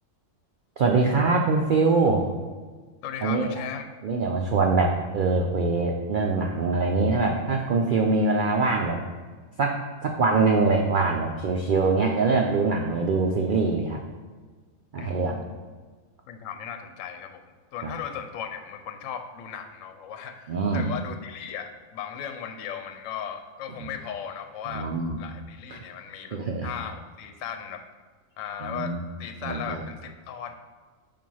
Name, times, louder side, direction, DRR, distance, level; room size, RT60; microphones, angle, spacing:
voice 1, 0.8-2.3 3.2-3.5 4.0-9.0 9.6-14.0 14.9-15.4 17.8-17.9 20.5-20.9 23.8-23.9 24.7-25.2 25.7-25.8 26.3-26.7 28.6-29.0 29.4-29.8, right 3 dB, 70° right, 1 dB, 0.4 m, -23 dB
voice 2, 3.0-3.9 15.0-15.6 16.3-17.4 17.7-24.9 25.2-27.8 28.4-30.5, left 8 dB, 75° left, 7 dB, 0.9 m, -37 dB
7.4 x 2.5 x 5.4 m, 1.4 s
omnidirectional pair, 1.4 m